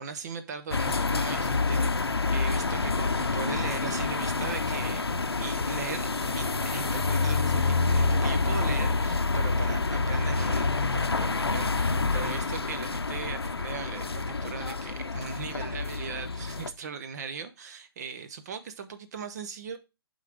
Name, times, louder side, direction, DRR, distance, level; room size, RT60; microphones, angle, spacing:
voice 1, 0.0-1.9 2.3-5.1 5.4-6.1 6.3-19.8, right 6 dB, 45° right, 0.7 m, -39 dB
sound 1, 0.7-16.7, left 3 dB, 85° left, 0.7 m, -27 dB
8.3 x 3.9 x 4.8 m
figure-of-eight pair, 135°, 13 cm